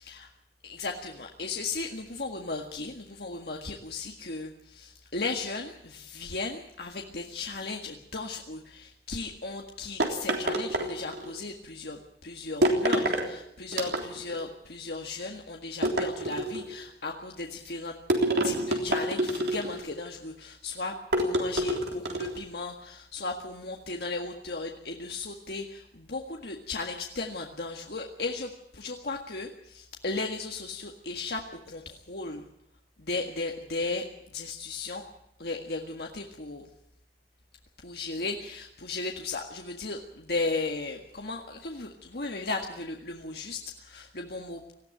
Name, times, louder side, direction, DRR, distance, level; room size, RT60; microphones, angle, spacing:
voice 1, 0.6-17.9 18.4-31.4 31.7-32.4 33.0-34.0 34.3-35.0 35.4-36.7 37.8-44.6, left 3 dB, 65° left, 2 dB, 1.8 m, -36 dB
sound 1, 10.0-11.4 12.6-13.3 13.7-14.4 15.8-16.7 18.1-19.9 21.1-22.4, right 1 dB, 75° right, 3.5 m, -27 dB
19.5 x 15.0 x 9.0 m, 0.76 s
head